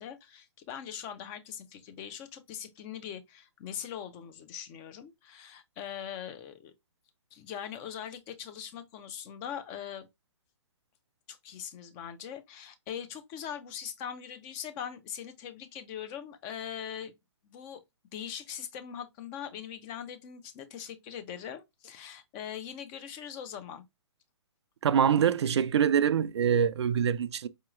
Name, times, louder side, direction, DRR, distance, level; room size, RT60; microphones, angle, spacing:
voice 1, 0.0-6.7 7.3-10.1 11.3-17.1 17.4-17.8 18.1-23.8, left 9 dB, 30° left, 0.7 m, -41 dB
voice 2, 24.8-27.5, right 8 dB, 65° right, 0.4 m, -25 dB
4.8 x 2.8 x 2.4 m
hypercardioid pair, 135°, 15 cm